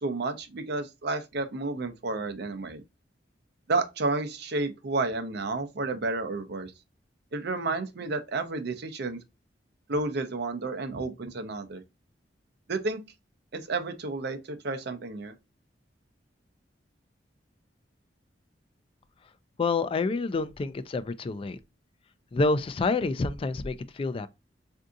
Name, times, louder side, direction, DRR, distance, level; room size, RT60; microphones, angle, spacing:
voice 1, 0.0-2.8 3.7-6.7 7.3-9.2 9.9-11.8 12.7-13.0 13.5-15.3, right 3 dB, 65° right, 0.6 m, -31 dB
voice 2, 19.6-21.6 22.3-24.3, left 3 dB, 30° left, 0.3 m, -28 dB
3.5 x 2.7 x 2.4 m
head